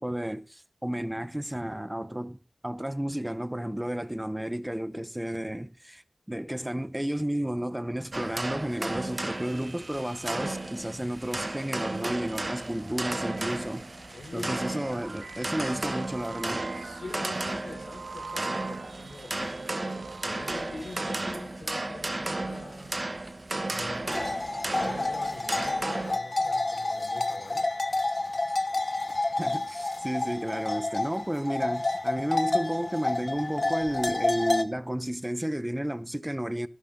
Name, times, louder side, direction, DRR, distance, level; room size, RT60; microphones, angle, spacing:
voice 1, 0.0-2.4 2.6-14.1 14.3-16.6 29.4-36.7, right 1 dB, 10° right, 0.9 m, -32 dB
sound 1, 8.1-26.2, right 2 dB, 40° right, 1.1 m, -34 dB
sound 2, 9.1-21.4, right 3 dB, 65° right, 1.8 m, -45 dB
voice 2, 14.1-14.8 15.6-15.8 16.7-23.1 23.7-27.7, left 2 dB, 90° left, 5.1 m, -44 dB
sound 3, 24.1-34.6, left 2 dB, 45° left, 1.2 m, -29 dB
13.0 x 11.5 x 3.8 m
cardioid pair, 45°, 0 cm